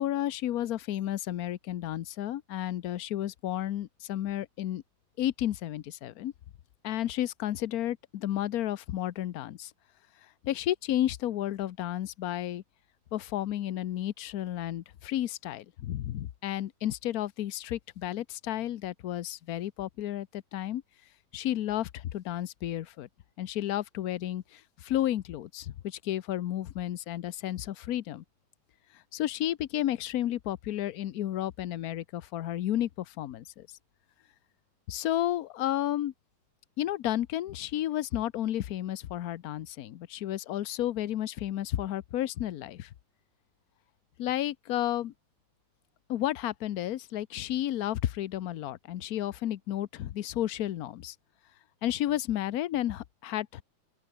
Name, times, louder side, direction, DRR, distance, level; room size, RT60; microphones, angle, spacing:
voice 1, 0.0-4.8 5.2-6.3 6.8-9.7 10.4-12.6 13.1-20.8 21.3-23.1 23.4-28.2 29.1-33.7 34.9-36.1 36.8-42.9 44.2-45.1 46.1-51.1 51.8-53.6, left 12 dB, 60° left, 1.1 m, -32 dB
open air
omnidirectional pair, 2.1 m